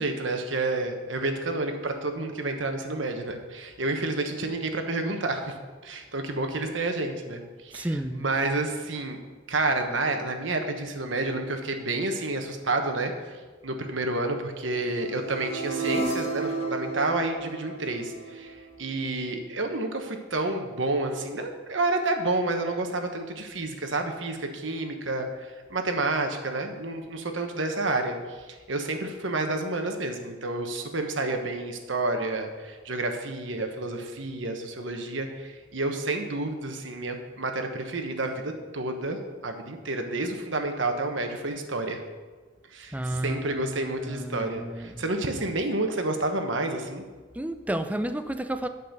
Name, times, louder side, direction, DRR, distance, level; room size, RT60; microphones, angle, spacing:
voice 1, 0.0-5.6 5.8-9.2 9.5-13.4 13.6-18.5 18.8-25.3 25.7-28.2 28.7-42.0 42.7-47.0, right 2 dB, 70° right, 5 dB, 1.2 m, -29 dB
voice 2, 7.7-8.3 42.9-45.0 47.3-48.7, right 1 dB, 10° right, 8 dB, 0.5 m, -32 dB
sound 1, 14.9-19.0, right 3 dB, 35° left, 1.2 m, -32 dB
10.5 x 5.4 x 6.6 m, 1.4 s
head